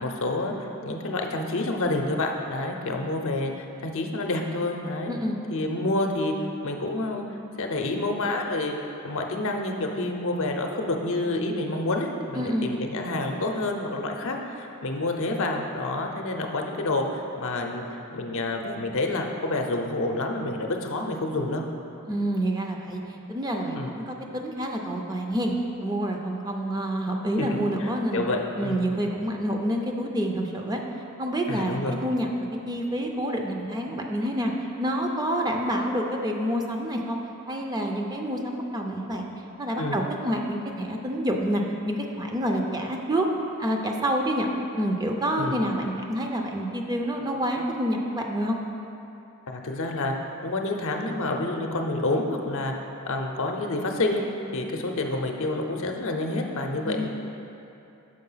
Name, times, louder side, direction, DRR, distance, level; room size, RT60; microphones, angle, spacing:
voice 1, 0.0-5.1 5.5-6.3 6.6-7.2 7.6-8.8 9.0-17.9 18.1-21.6 23.7-23.9 27.4-28.9 31.5-32.0 39.8-40.0 45.4-45.6 49.5-50.1 50.4-52.7 53.1-54.2 54.5-57.1, left 2 dB, 65° left, 2 dB, 0.6 m, -28 dB
voice 2, 5.1-5.4 12.3-12.7 22.1-23.0 23.3-25.5 25.8-28.2 28.6-30.8 31.2-34.5 34.8-37.2 37.5-39.3 39.6-43.3 43.6-44.5 44.7-48.6 56.8-57.1, equal, 20° right, 1 dB, 0.5 m, -28 dB
6.5 x 4.6 x 5.6 m, 2.8 s
head